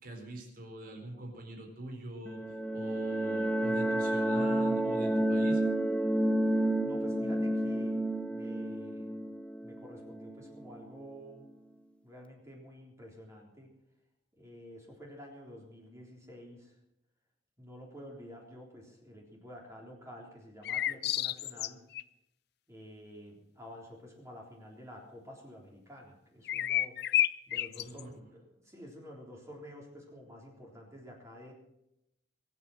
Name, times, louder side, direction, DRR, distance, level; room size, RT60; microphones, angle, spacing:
voice 1, 0.0-5.6 27.7-28.1, right 1 dB, 50° right, 1 dB, 4.2 m, -44 dB
sound 1, 2.3-10.8, right 1 dB, 5° left, 0.7 m, -30 dB
voice 2, 6.8-9.2 9.6-11.5 12.0-13.7 14.4-16.7 17.6-21.8 22.7-27.0 27.5-31.5, equal, 15° right, -1 dB, 3.6 m, -50 dB
sound 2, 20.6-22.0 26.5-28.0, left 12 dB, 60° left, 0.5 m, -30 dB
22.0 x 8.5 x 6.3 m, 0.82 s
head